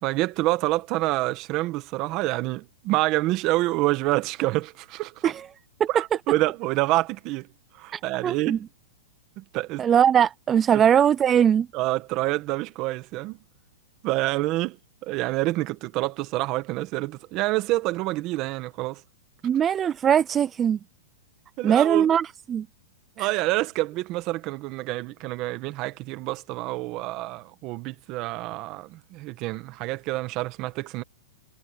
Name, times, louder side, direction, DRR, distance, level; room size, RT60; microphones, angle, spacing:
voice 1, 0.0-5.3 5.9-7.5 7.8-8.6 9.4-9.9 10.7-10.8 11.7-13.4 14.0-14.8 15.0-19.0 21.6-22.1 23.2-31.0, right 19 dB, 35° right, 1.5 m, -27 dB
voice 2, 7.9-8.6 9.8-11.7 19.4-20.8 21.6-22.7 23.2-23.3, right 8 dB, 20° right, 0.4 m, -21 dB
hypercardioid pair, 155°, 0 cm